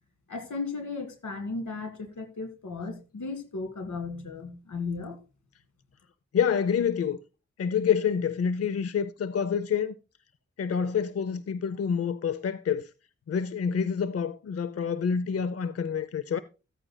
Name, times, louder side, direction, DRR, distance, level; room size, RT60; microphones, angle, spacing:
voice 1, 0.3-5.2, left 4 dB, 90° left, 1.9 m, -35 dB
voice 2, 6.3-7.2 7.6-9.9 10.6-12.9 13.3-16.4, left 7 dB, 55° left, 0.6 m, -27 dB
14.5 x 8.8 x 2.2 m
cardioid pair, 50°, 29 cm